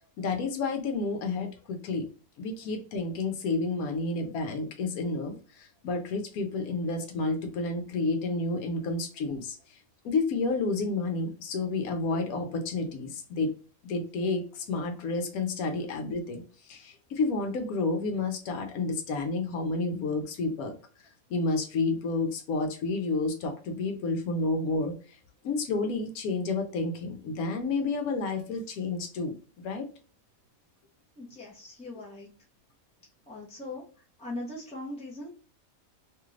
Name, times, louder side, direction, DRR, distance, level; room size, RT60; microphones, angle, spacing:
voice 1, 0.2-2.1 2.4-9.6 10.0-13.5 13.8-20.7 21.3-25.0 25.4-29.9, left 3 dB, 85° left, 4 dB, 1.1 m, -30 dB
voice 2, 31.2-32.3 33.3-33.8 34.2-35.3, left 1 dB, 10° left, -4 dB, 0.4 m, -40 dB
2.8 x 2.4 x 3.1 m, 0.37 s
omnidirectional pair, 1.5 m